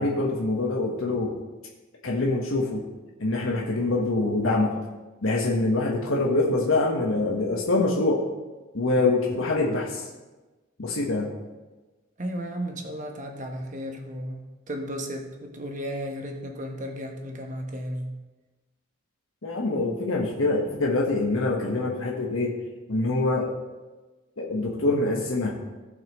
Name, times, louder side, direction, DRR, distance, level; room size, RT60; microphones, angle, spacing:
voice 1, 0.0-1.3 2.0-2.8 3.2-4.7 5.2-8.2 8.7-10.1 10.8-11.3 19.4-22.5 22.9-23.5 24.4-25.5, left 2 dB, 85° left, -2 dB, 1.5 m, -25 dB
voice 2, 12.2-18.1, equal, 35° right, 3 dB, 1.2 m, -34 dB
17.0 x 5.7 x 3.2 m, 1.2 s
head